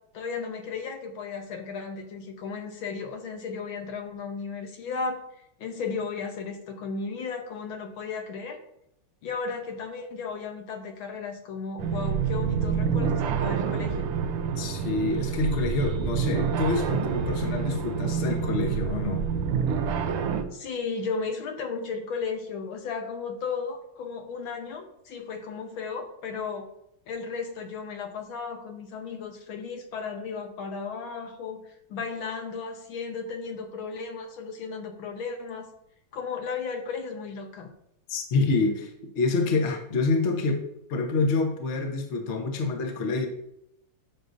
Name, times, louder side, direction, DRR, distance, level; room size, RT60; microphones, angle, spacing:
voice 1, 0.1-5.2 5.6-8.6 9.2-14.1 20.5-26.7 27.1-35.7 36.1-37.7, left 5 dB, 70° left, 4 dB, 1.7 m, -35 dB
sound 1, 11.8-20.4, right 7 dB, 90° right, 1.7 m, -27 dB
voice 2, 14.6-19.2 38.1-43.3, left 3 dB, 40° left, 3 dB, 1.1 m, -27 dB
11.0 x 6.4 x 2.7 m, 0.75 s
omnidirectional pair, 2.4 m